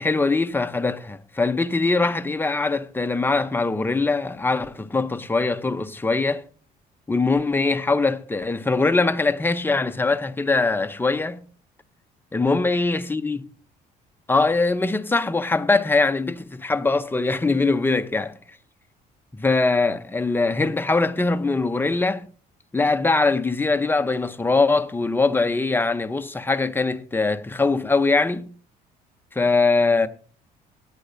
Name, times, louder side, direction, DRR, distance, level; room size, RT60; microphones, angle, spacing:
voice 1, 0.0-6.4 7.1-11.4 12.3-13.4 14.3-18.3 19.3-22.2 22.7-28.5 29.3-30.1, left 3 dB, 10° left, 0.8 m, -22 dB
16.5 x 9.9 x 2.7 m
cardioid pair, 110°, 17 cm